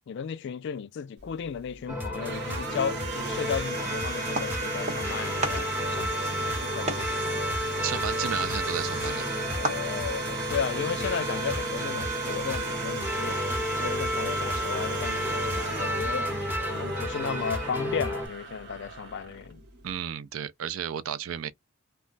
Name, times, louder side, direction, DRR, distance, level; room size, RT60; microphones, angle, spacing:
voice 1, 0.1-7.3 9.4-13.4 13.8-16.3 16.7-19.6, left 7 dB, 60° left, 0.3 m, -34 dB
Domestic sounds home sounds, 1.2-20.0, right 4 dB, 60° right, 1.0 m, -36 dB
sound 1, 1.9-18.3, left 1 dB, 10° right, 0.8 m, -31 dB
sound 2, 4.3-5.1 5.4-10.3, right 1 dB, 35° right, 0.9 m, -36 dB
voice 2, 7.8-9.3 19.8-21.5, right 8 dB, 80° right, 0.4 m, -33 dB
2.3 x 2.1 x 3.8 m
head